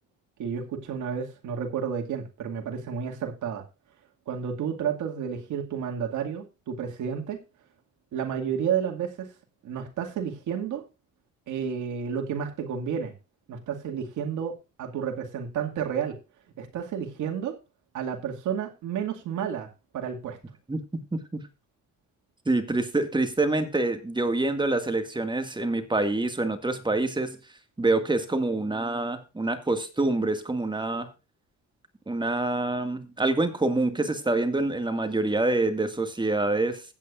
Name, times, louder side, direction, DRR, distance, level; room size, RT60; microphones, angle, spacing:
voice 1, 0.4-3.6 4.3-7.4 8.1-9.3 9.6-10.8 11.5-13.1 13.5-16.2 16.6-17.6 17.9-19.7 19.9-20.4, right 7 dB, 80° right, 3 dB, 2.2 m, -31 dB
voice 2, 20.7-21.4 22.5-27.4 27.8-31.1 32.1-36.8, right 2 dB, 15° right, 9 dB, 1.9 m, -26 dB
16.0 x 8.6 x 2.5 m, 0.30 s
cardioid pair, 90°, 30 cm